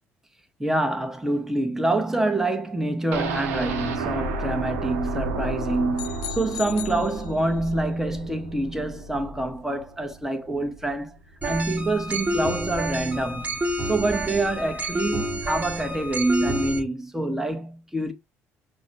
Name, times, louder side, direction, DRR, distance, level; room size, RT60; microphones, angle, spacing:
voice 1, 0.6-11.2 11.5-13.6 13.8-18.1, right 2 dB, 5° right, 1.0 m, -26 dB
sound 1, 3.1-11.0 11.3-11.4 11.8-11.9, right 3 dB, 70° right, 0.6 m, -32 dB
sound 2, 6.0-7.8, left 15 dB, 60° left, 0.4 m, -38 dB
sound 3, 11.4-16.8, right 1 dB, 20° right, 1.2 m, -29 dB
6.0 x 2.2 x 2.6 m
figure-of-eight pair, 50°, 8 cm